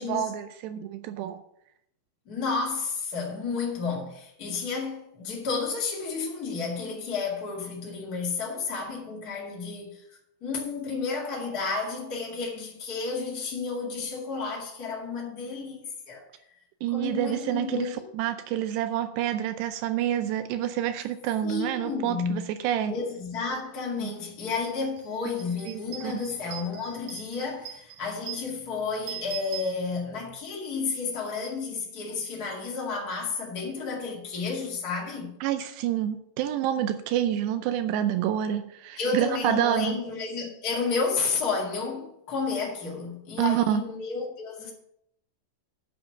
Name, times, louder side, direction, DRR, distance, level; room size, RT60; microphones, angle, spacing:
voice 1, 0.0-1.4 16.8-22.9 24.0-24.1 25.7-26.2 35.4-40.0 43.4-43.8, right 11 dB, 90° right, 2.4 m, -28 dB
voice 2, 2.2-10.1 10.4-16.2 16.9-18.1 21.4-22.5 22.9-35.3 39.0-44.7, left 4 dB, 70° left, 0.8 m, -31 dB
sound 1, 24.0-24.2 24.5-30.3, right 10 dB, 55° right, 2.2 m, -43 dB
9.2 x 7.8 x 5.9 m
omnidirectional pair, 5.6 m